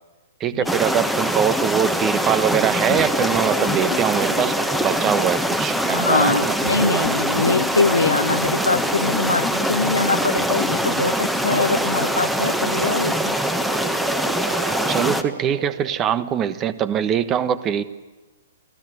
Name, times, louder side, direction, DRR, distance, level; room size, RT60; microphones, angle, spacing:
voice 1, 0.4-4.5 4.8-7.1 14.9-17.8, right 9 dB, 25° right, 14 dB, 1.3 m, -22 dB
sound 1, 0.7-15.2, equal, 5° right, 1.5 m, -23 dB
sound 2, 2.1-2.3 2.5-6.0 6.2-6.3 6.7-11.0, left 8 dB, 25° left, 1.9 m, -33 dB
sound 3, 3.0-16.2, right 6 dB, 60° right, 1.0 m, -35 dB
voice 2, 5.9-13.4, left 3 dB, 80° left, 9 dB, 0.8 m, -23 dB
28.5 x 16.5 x 9.7 m, 1.2 s
figure-of-eight pair, 115°, 0 cm